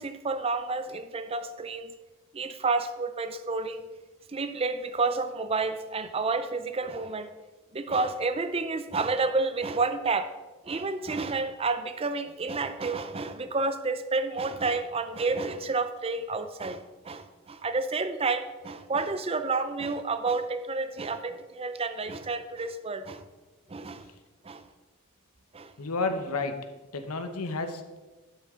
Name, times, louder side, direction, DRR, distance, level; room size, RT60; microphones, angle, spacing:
voice 1, 0.0-1.9 2.3-3.9 4.3-7.3 7.7-10.3 10.6-23.2 23.7-24.1 24.4-24.7 25.5-25.7, right 3 dB, 25° right, 11 dB, 0.5 m, -30 dB
voice 2, 25.8-28.0, left 3 dB, 80° left, 8 dB, 0.9 m, -32 dB
11.0 x 6.4 x 3.7 m, 1.2 s
head